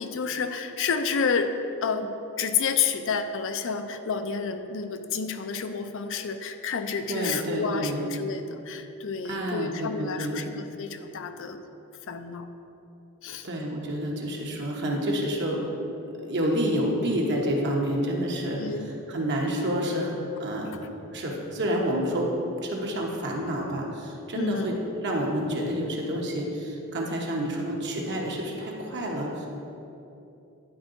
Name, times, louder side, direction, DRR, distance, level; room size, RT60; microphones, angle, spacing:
voice 1, 0.0-1.5 1.8-11.6 12.1-12.5 13.2-13.5 18.6-18.9 24.3-24.7, left 5 dB, 60° left, 8 dB, 0.5 m, -30 dB
voice 2, 7.1-8.0 9.2-10.5 13.4-15.6 16.0-20.1 20.4-20.7 21.1-22.3 22.6-24.7 25.0-29.5, equal, 55° right, -1 dB, 1.1 m, -29 dB
10.5 x 4.7 x 3.9 m, 2.9 s
head